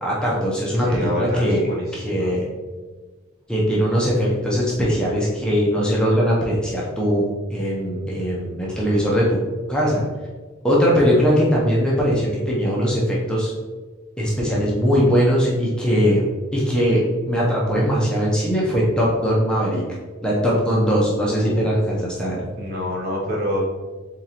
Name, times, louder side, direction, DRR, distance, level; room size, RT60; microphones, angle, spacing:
voice 1, 0.0-1.6 1.9-2.5 3.5-9.4 9.7-10.0 10.6-13.5 14.2-16.2 16.5-19.8 20.2-22.4, equal, 5° left, -5 dB, 0.7 m, -20 dB
voice 2, 0.8-2.3 21.4-21.7 22.6-23.6, left 1 dB, 45° right, -2 dB, 0.9 m, -27 dB
3.9 x 3.5 x 2.9 m, 1.3 s
head